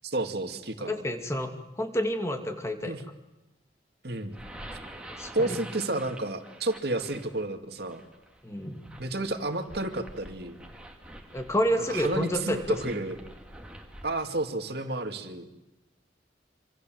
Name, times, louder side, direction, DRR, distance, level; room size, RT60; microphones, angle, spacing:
voice 1, 0.0-1.0 2.8-3.0 4.0-4.3 5.3-8.0 9.0-10.6 11.8-13.2 14.0-15.5, right 2 dB, 60° right, 6 dB, 2.5 m, -31 dB
voice 2, 0.9-1.5 1.8-2.9 5.2-5.6 8.4-8.8 11.3-12.6, equal, 15° left, 5 dB, 2.6 m, -29 dB
sound 1, 4.2-14.3, right 1 dB, 5° right, 2.8 m, -47 dB
27.0 x 26.0 x 7.9 m, 0.99 s
head